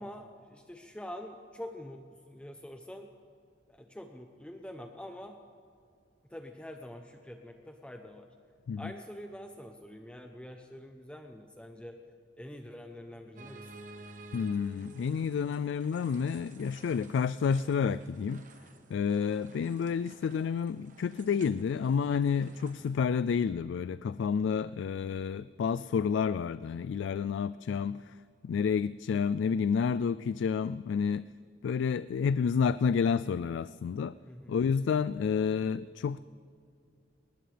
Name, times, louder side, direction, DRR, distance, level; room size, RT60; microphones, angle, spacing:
voice 1, 0.0-3.1 3.7-5.4 6.3-8.3 8.8-12.0 12.3-13.7 34.3-34.6, left 1 dB, 5° left, 4 dB, 0.7 m, -45 dB
sound 1, 13.4-23.0, right 2 dB, 45° right, 1.2 m, -53 dB
voice 2, 14.3-18.4 18.9-28.1 28.4-31.3 31.6-34.2 34.5-36.2, left 6 dB, 90° left, 16 dB, 0.3 m, -30 dB
20.5 x 19.0 x 3.4 m, 2.4 s
head